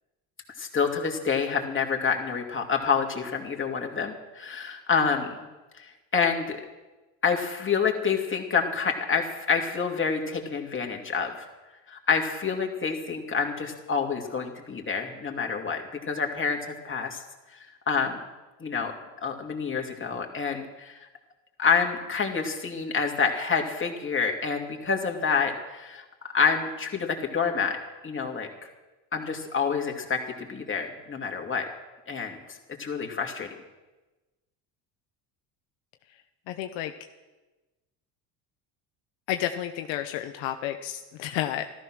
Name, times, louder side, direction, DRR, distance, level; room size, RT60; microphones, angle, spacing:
voice 1, 0.6-5.4 5.8-6.6 7.2-11.5 11.9-17.2 17.5-18.2 18.6-18.9 19.2-21.1 21.6-26.0 26.3-27.8 28.0-28.7 29.1-31.7 32.1-33.5, left 5 dB, 25° left, 2 dB, 2.5 m, -28 dB
voice 2, 36.5-36.9 39.3-41.7, left 12 dB, 75° left, 7 dB, 1.0 m, -31 dB
13.5 x 13.5 x 6.2 m, 1.2 s
supercardioid pair, 90°, 46 cm